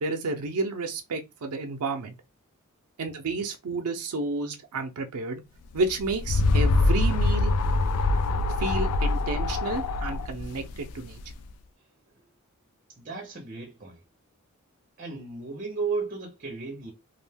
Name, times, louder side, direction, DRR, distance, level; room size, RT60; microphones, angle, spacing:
voice 1, 0.0-2.1 3.0-5.4 5.7-7.5 8.6-11.2, right 3 dB, 85° right, 0.5 m, -31 dB
sound 1, 5.8-11.4, left 2 dB, 90° left, 0.3 m, -24 dB
voice 2, 13.0-14.0 15.0-16.9, right 4 dB, 40° right, 0.6 m, -34 dB
2.4 x 2.1 x 3.3 m
head